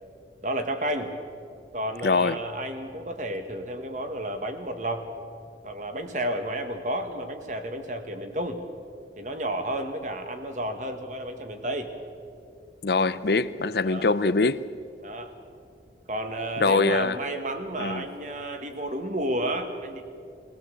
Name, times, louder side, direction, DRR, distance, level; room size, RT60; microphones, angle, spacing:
voice 1, 0.4-1.1 1.7-5.1 5.6-8.6 9.2-11.9 13.0-13.2 13.8-14.1 15.0-15.4 16.1-20.0, right 1 dB, 45° right, 1.7 m, -31 dB
voice 2, 2.0-2.4 12.8-14.7 16.6-17.2 17.8-18.1, left 3 dB, 60° left, 0.6 m, -23 dB
22.0 x 17.0 x 7.8 m
head